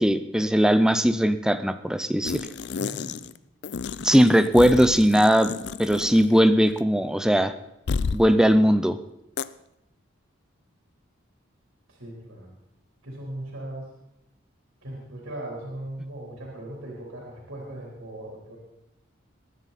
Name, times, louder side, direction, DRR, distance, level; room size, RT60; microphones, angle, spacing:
voice 1, 0.0-2.4 4.0-5.5 5.8-7.5 8.1-9.0, equal, 5° right, 10 dB, 0.5 m, -19 dB
sound 1, 2.2-3.4 3.6-6.4 6.7-6.8 7.9-8.3 9.4-9.5, left 5 dB, 55° left, 0.4 m, -31 dB
voice 2, 2.8-3.1 11.9-12.5 13.0-13.9 14.8-18.6, right 1 dB, 90° right, -3 dB, 3.9 m, -38 dB
20.5 x 10.5 x 4.2 m, 0.87 s
head